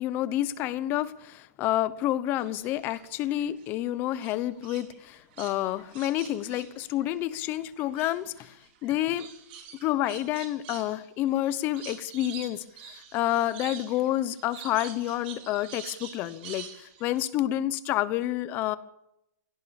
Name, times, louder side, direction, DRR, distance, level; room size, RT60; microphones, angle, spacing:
voice 1, 0.0-8.5 8.8-9.3 9.8-18.8, left 13 dB, 20° left, 16 dB, 1.0 m, -29 dB
sound 1, 2.4-3.7 4.2-7.5 7.8-17.3, right 8 dB, 40° right, 4.4 m, -46 dB
24.0 x 17.5 x 7.1 m, 0.83 s
hypercardioid pair, 170°, 9 cm